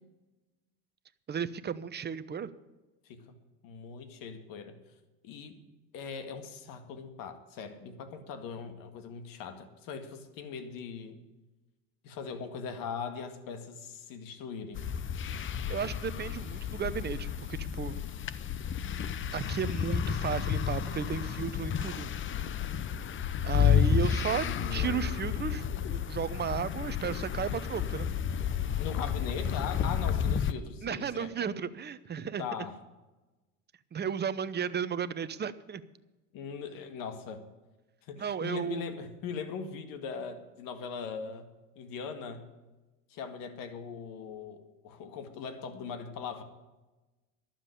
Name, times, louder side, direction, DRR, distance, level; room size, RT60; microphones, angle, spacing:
voice 1, 1.3-2.5 15.3-18.0 19.3-22.1 23.4-24.5 24.7-28.1 30.8-32.5 33.9-35.8 38.2-39.0, right 7 dB, 25° right, 15 dB, 0.8 m, -34 dB
voice 2, 3.6-4.8 5.2-5.6 5.9-11.2 12.0-14.8 24.2-25.1 28.8-31.5 32.4-32.8 36.3-37.4 38.0-41.5 41.8-42.5 43.1-46.4, left 6 dB, 60° left, 9 dB, 2.0 m, -40 dB
sound 1, 14.7-30.5, left 8 dB, 30° left, 0.7 m, -31 dB
12.0 x 7.6 x 9.9 m, 1.1 s
hypercardioid pair, 85°, 38 cm